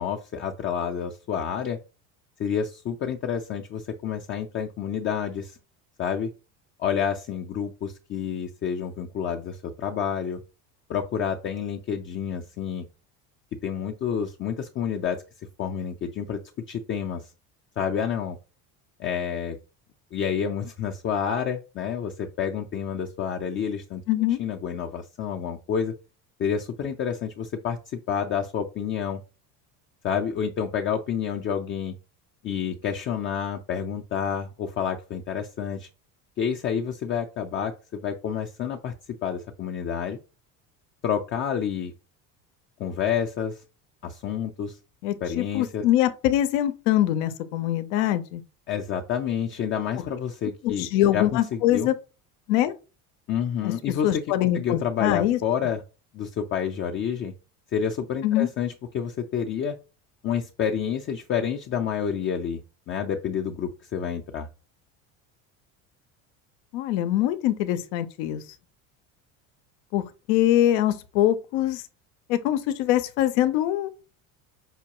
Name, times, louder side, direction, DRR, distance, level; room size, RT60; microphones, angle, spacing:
voice 1, 0.0-1.8 2.4-5.6 6.0-6.3 6.8-10.4 10.9-12.9 13.6-15.2 15.6-16.4 16.7-17.3 17.8-18.4 19.0-19.6 20.1-24.0 24.4-25.9 26.4-29.2 30.0-32.0 32.4-35.9 36.4-38.9 39.2-40.2 41.0-41.9 42.8-43.6 44.0-44.8 45.2-45.8 48.7-50.9 51.1-51.9 53.3-55.8 56.1-57.3 57.7-59.8 60.2-62.6 62.9-64.5, left 7 dB, 35° left, 0.4 m, -29 dB
voice 2, 24.1-24.4 45.0-48.4 50.6-51.9 52.5-52.7 53.6-53.7 54.0-55.4 58.2-58.5 66.7-68.4 69.9-71.8 72.3-73.9, left 13 dB, 80° left, 0.6 m, -23 dB
5.5 x 2.2 x 2.9 m
supercardioid pair, 105°, 39 cm